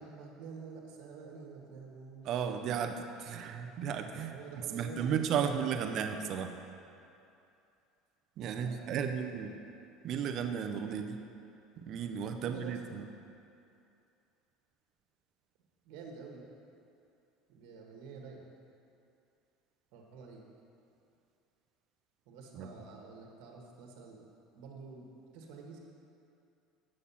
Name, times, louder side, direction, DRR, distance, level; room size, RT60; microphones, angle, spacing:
voice 1, 0.0-2.5 4.2-5.4 8.5-9.6 12.4-12.8 15.8-16.4 17.5-18.5 19.9-20.4 22.3-24.2 24.5-25.1 25.3-25.8, right 5 dB, 70° right, 0 dB, 1.7 m, -48 dB
voice 2, 2.2-6.6 8.4-9.5 10.0-11.2 11.8-13.1 22.6-22.7, right 7 dB, 50° right, 6 dB, 0.7 m, -34 dB
8.6 x 6.6 x 5.7 m, 2.7 s
supercardioid pair, 130°, 0 cm